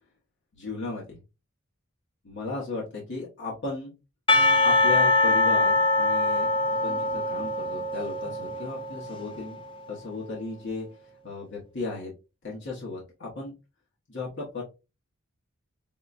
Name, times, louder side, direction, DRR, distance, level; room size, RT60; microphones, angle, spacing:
voice 1, 0.6-1.2 2.2-3.9 4.6-9.6 9.9-10.9 11.2-12.1 12.4-13.5 14.1-14.6, left 3 dB, 60° left, -4 dB, 1.1 m, -35 dB
Percussion / Church bell, 4.3-9.5, left 2 dB, 25° left, 0.5 m, -23 dB
5.6 x 2.3 x 2.5 m, 0.28 s
head